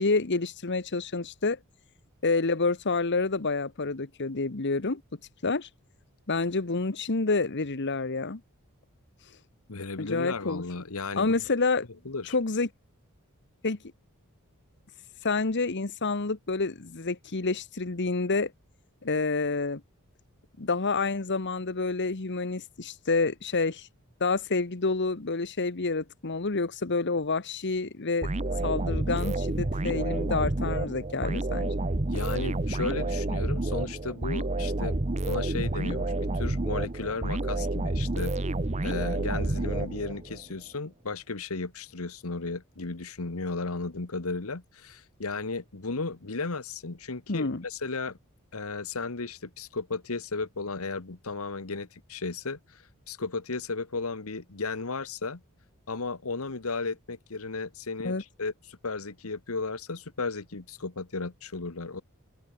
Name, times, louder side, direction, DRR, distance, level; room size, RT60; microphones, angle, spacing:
voice 1, 0.0-1.6 2.2-5.0 5.4-5.7 6.3-8.4 10.0-10.6 11.2-11.9 12.3-12.7 13.6-13.8 15.2-18.5 19.0-19.8 20.6-23.9 24.2-28.3 28.6-31.7 47.3-47.6 58.0-58.2, left 3 dB, 55° left, 1.2 m, -28 dB
voice 2, 9.7-11.4 12.0-12.3 32.1-38.3 38.8-48.2 48.5-55.4 55.9-62.0, left 3 dB, 70° left, 1.4 m, -35 dB
sound 1, 28.2-40.4, right 2 dB, 30° right, 1.0 m, -29 dB
open air
head